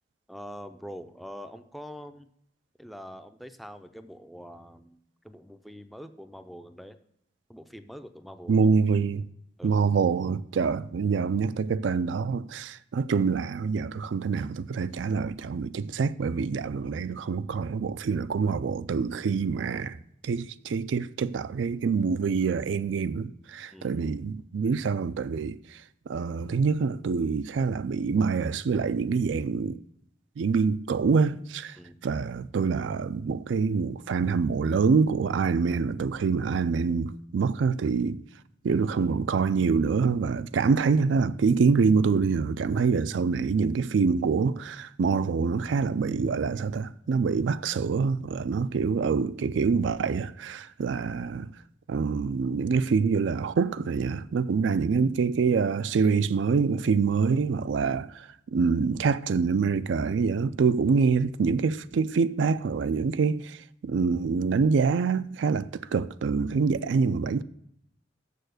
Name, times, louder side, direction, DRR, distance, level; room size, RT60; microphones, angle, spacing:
voice 1, 0.3-2.3 2.8-5.0 5.2-7.0 7.5-8.6 9.6-9.8 23.7-24.0 31.8-32.0, equal, ahead, 0.4 m, -44 dB
voice 2, 8.5-9.2 9.6-20.0 20.2-29.8 30.4-31.8 32.0-38.2 38.6-51.5 51.9-67.4, right 5 dB, 80° right, 0.4 m, -26 dB
6.8 x 6.8 x 6.5 m
head